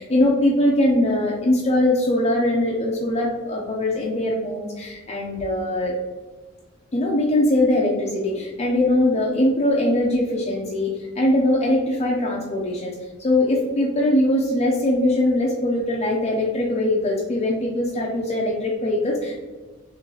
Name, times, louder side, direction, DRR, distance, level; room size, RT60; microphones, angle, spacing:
voice 1, 0.0-5.9 6.9-19.4, left 1 dB, 30° left, -3 dB, 0.5 m, -21 dB
3.8 x 3.2 x 3.0 m, 1.3 s
head